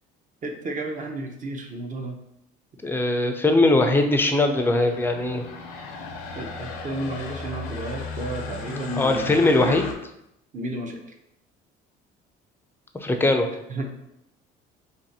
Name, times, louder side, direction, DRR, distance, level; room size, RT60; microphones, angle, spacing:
voice 1, 0.4-2.2 6.4-9.8 10.5-11.0 13.7-13.9, right 2 dB, 40° right, 2 dB, 0.7 m, -32 dB
voice 2, 2.8-5.5 9.0-9.9 13.0-13.5, left 2 dB, 10° left, 4 dB, 0.5 m, -20 dB
sound 1, 4.5-9.9, left 4 dB, 80° left, 0.6 m, -36 dB
2.6 x 2.5 x 4.1 m, 0.81 s
supercardioid pair, 85°, 21 cm